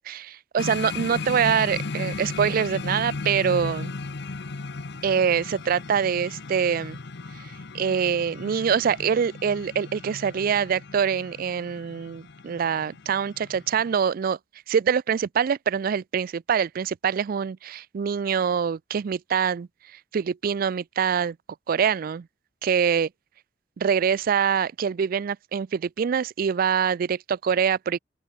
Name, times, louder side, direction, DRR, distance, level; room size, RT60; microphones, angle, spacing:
voice 1, 0.1-3.9 5.0-7.0 7.7-14.4 14.7-19.7 20.1-21.4 21.7-22.3 22.6-23.1 23.8-28.0, right 7 dB, 50° right, 0.3 m, -24 dB
sound 1, 0.6-13.9, left 3 dB, 65° left, 0.9 m, -36 dB
open air
head